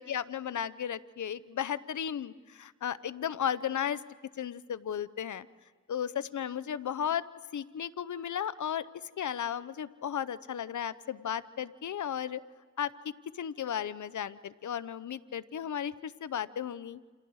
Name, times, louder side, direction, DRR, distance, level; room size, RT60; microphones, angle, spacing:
voice 1, 0.0-4.0 4.4-5.5 5.9-7.2 7.5-8.9 9.2-12.4 12.8-12.9 13.3-17.0, left 9 dB, 80° left, 16 dB, 0.7 m, -34 dB
30.0 x 27.0 x 4.8 m, 1.4 s
cardioid pair, 50°, 29 cm